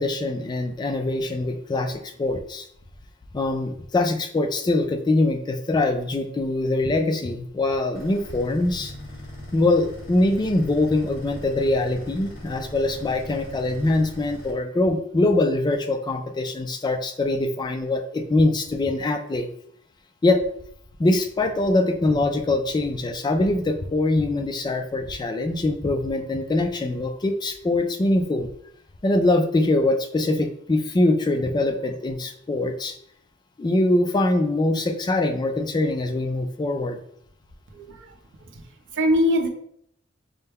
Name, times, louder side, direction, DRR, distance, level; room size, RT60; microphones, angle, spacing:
voice 1, 0.0-2.7 3.3-8.9 9.5-19.5 20.2-20.4 21.0-28.5 29.0-32.9 33.6-37.0, left 2 dB, 20° left, 5 dB, 0.3 m, -23 dB
sound 1, 7.9-14.5, left 1 dB, 45° left, 1.3 m, -40 dB
voice 2, 37.7-38.1 38.4-38.6 38.9-39.5, left 1 dB, 60° right, 3 dB, 0.6 m, -22 dB
5.4 x 2.2 x 3.4 m, 0.68 s
head